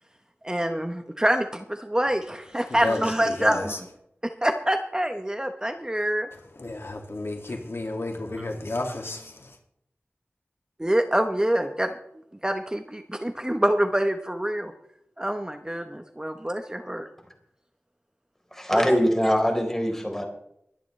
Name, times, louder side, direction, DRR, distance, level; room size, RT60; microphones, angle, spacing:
voice 1, 0.4-3.9 4.2-6.3 8.4-8.5 10.8-12.0 12.4-14.7 15.2-17.1 18.7-19.0, right 1 dB, 15° right, 1.0 m, -26 dB
voice 2, 2.7-3.8 6.6-9.6, left 2 dB, 65° left, 2.3 m, -32 dB
voice 3, 18.5-20.2, equal, 10° left, 4.0 m, -23 dB
23.5 x 10.0 x 3.3 m
wide cardioid pair, 65°, 5 cm